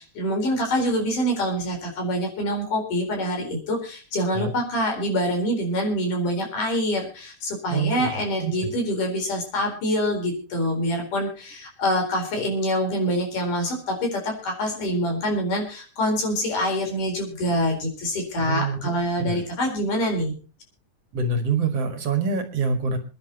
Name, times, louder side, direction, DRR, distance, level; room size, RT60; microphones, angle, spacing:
voice 1, 0.0-20.3, equal, 85° left, 2 dB, 5.8 m, -25 dB
voice 2, 7.7-8.7 18.5-18.9 19.2-19.4 21.1-23.0, right 4 dB, 55° right, 6 dB, 2.8 m, -26 dB
27.0 x 10.5 x 3.0 m, 0.34 s
omnidirectional pair, 3.6 m